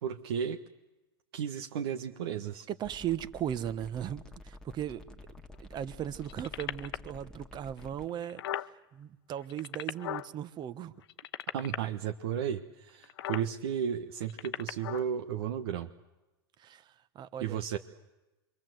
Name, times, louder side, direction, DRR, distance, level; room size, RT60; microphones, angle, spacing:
voice 1, 0.0-0.6 1.3-2.7 11.5-15.9 17.4-17.8, right 8 dB, 75° right, 4 dB, 1.4 m, -34 dB
voice 2, 2.7-5.2 5.6-8.4 8.9-10.9 16.6-17.6, right 10 dB, 35° right, 14 dB, 1.3 m, -37 dB
sound 1, 2.8-8.1, left 3 dB, 5° left, 1.9 m, -50 dB
sound 2, 6.2-7.1 7.8-7.9 8.1-8.7 9.4-10.3 11.0-11.8 13.0-13.5 14.2-15.1 15.8-15.9, left 13 dB, 70° left, 0.9 m, -37 dB
27.0 x 24.0 x 7.9 m, 1.0 s
hypercardioid pair, 115°, 13 cm